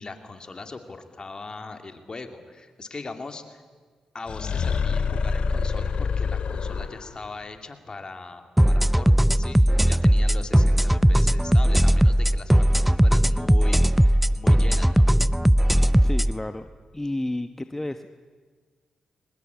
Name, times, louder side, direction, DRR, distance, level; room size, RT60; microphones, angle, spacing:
voice 1, 0.0-3.6 4.1-15.1, left 3 dB, 40° left, 6 dB, 2.8 m, -40 dB
sound 1, 4.3-7.3, left 5 dB, 60° left, 1.3 m, -26 dB
sound 2, 8.6-16.3, equal, 5° right, 0.6 m, -18 dB
voice 2, 16.0-16.7 16.9-18.1, left 1 dB, 15° left, 9 dB, 1.0 m, -31 dB
22.0 x 20.0 x 8.6 m, 1.5 s
supercardioid pair, 45°, 2 cm